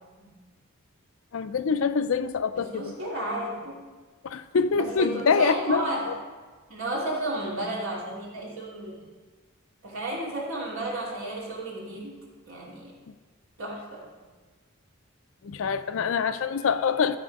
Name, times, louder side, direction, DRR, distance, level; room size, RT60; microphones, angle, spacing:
voice 1, 1.3-2.9 4.2-6.1 15.4-17.2, left 5 dB, 65° left, 12 dB, 0.4 m, -25 dB
voice 2, 2.5-3.8 4.7-6.1 6.7-8.9 9.8-12.1 12.5-12.9 13.6-14.0, right 1 dB, 65° right, -4 dB, 2.6 m, -32 dB
13.0 x 4.3 x 5.2 m, 1.4 s
head